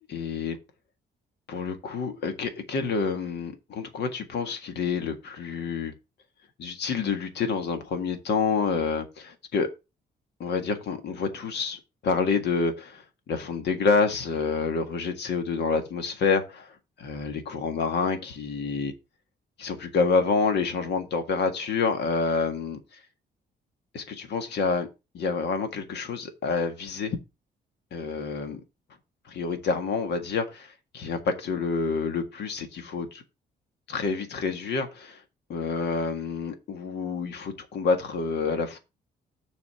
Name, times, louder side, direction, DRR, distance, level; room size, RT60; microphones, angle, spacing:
voice 1, 0.1-0.6 1.5-5.9 6.6-9.7 10.4-18.9 19.6-22.8 23.9-24.9 25.1-27.2 27.9-28.6 29.3-33.2 33.9-35.2 35.5-38.8, left 5 dB, 75° left, 1.7 m, -28 dB
7.1 x 4.2 x 6.7 m
cardioid pair, 120°, 18 cm